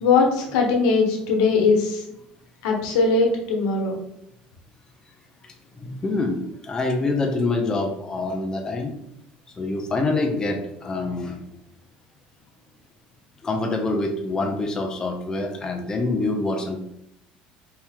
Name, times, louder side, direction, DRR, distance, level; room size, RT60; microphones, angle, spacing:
voice 1, 0.0-2.0 2.6-3.9, left 4 dB, 90° left, 0 dB, 1.1 m, -20 dB
voice 2, 5.4-8.9 9.6-11.4 13.4-16.8, left 2 dB, 25° left, 2 dB, 0.7 m, -26 dB
4.4 x 2.8 x 3.6 m, 0.79 s
supercardioid pair, 110°, 3 cm